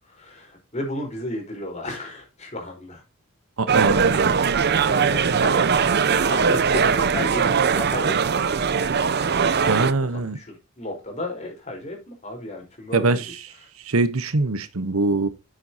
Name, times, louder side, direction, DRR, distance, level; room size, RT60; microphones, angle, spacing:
voice 1, 0.1-3.0 3.9-5.6 6.1-8.4 9.0-9.1 9.6-9.7 10.0-13.3, left 1 dB, 35° left, 4.4 m, -34 dB
voice 2, 3.6-4.4 9.7-10.4 12.9-13.3 13.9-15.3, right 3 dB, 85° right, 1.0 m, -23 dB
sound 1, 3.7-9.9, right 6 dB, 50° right, 0.6 m, -20 dB
9.7 x 7.6 x 2.8 m
head